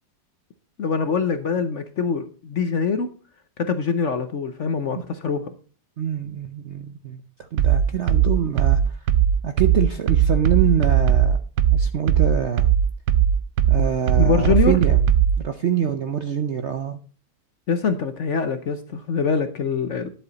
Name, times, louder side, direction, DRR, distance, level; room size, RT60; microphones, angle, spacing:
voice 1, 0.8-3.1 3.6-5.5 14.2-14.7 17.7-20.1, left 5 dB, 55° left, 9 dB, 0.9 m, -24 dB
voice 2, 6.0-7.2 7.5-9.0 9.4-11.4 11.7-12.7 13.7-15.1 15.4-17.0, right 8 dB, 60° right, 8 dB, 0.7 m, -25 dB
sound 1, 7.6-15.4, right 9 dB, 80° right, 1.4 m, -18 dB
11.0 x 7.8 x 4.0 m, 0.39 s
omnidirectional pair, 2.0 m